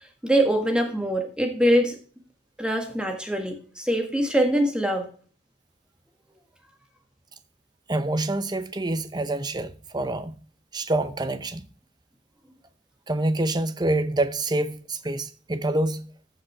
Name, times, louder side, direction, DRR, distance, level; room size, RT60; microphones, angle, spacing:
voice 1, 0.2-2.0 2.6-5.1, equal, 5° right, 1.6 m, -23 dB
voice 2, 7.9-10.3 10.7-11.6 13.1-16.1, right 2 dB, 20° right, 0.7 m, -26 dB
15.0 x 5.1 x 4.4 m
head